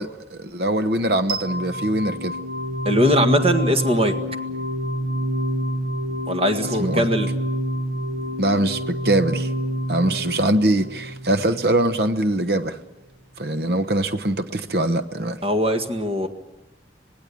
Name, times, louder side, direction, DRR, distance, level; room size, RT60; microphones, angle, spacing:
voice 1, 0.0-2.4 6.8-7.1 8.4-9.5 9.9-12.8 13.4-15.4, right 1 dB, 60° right, 1.0 m, -22 dB
sound 1, 1.3-12.2, equal, 85° right, 1.3 m, -28 dB
voice 2, 2.8-4.1 6.3-7.3 15.4-16.3, equal, 35° right, 1.8 m, -20 dB
26.5 x 19.0 x 8.6 m
head